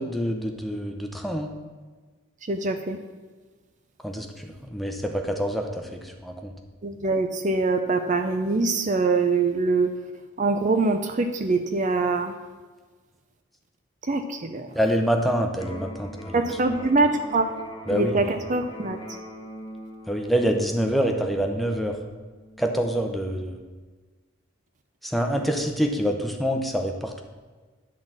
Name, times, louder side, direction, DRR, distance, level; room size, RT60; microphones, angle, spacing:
voice 1, 0.0-1.5 4.0-6.5 14.7-16.5 17.9-18.3 20.1-22.0 22.6-23.6 25.0-27.2, equal, ahead, 3 dB, 0.8 m, -26 dB
voice 2, 2.5-3.0 6.8-9.9 10.4-12.3 14.1-14.7 16.3-17.5 17.9-19.0, right 3 dB, 35° right, 7 dB, 0.5 m, -23 dB
Electric guitar, 15.6-23.5, equal, 20° left, 1.3 m, -42 dB
11.0 x 4.0 x 7.4 m, 1.4 s
head